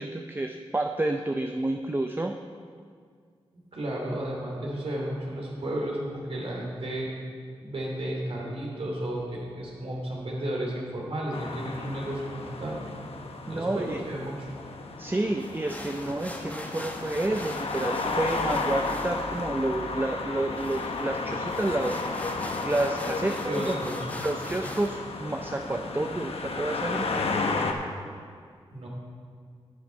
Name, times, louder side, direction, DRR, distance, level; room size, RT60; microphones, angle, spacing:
voice 1, 0.0-2.4 13.5-14.0 15.0-22.0 22.6-23.8 24.1-27.2, right 2 dB, 20° right, 4 dB, 0.5 m, -30 dB
voice 2, 3.7-7.1 7.6-12.8 13.5-14.5 23.2-24.0 24.4-24.5 28.7-28.9, right 1 dB, 65° right, -3 dB, 2.8 m, -33 dB
sound 1, 11.3-27.7, left 3 dB, 65° left, 0.9 m, -33 dB
sound 2, 15.4-25.0, left 1 dB, 15° left, 1.3 m, -42 dB
11.0 x 8.0 x 4.5 m, 2.1 s
cardioid pair, 55°, 11 cm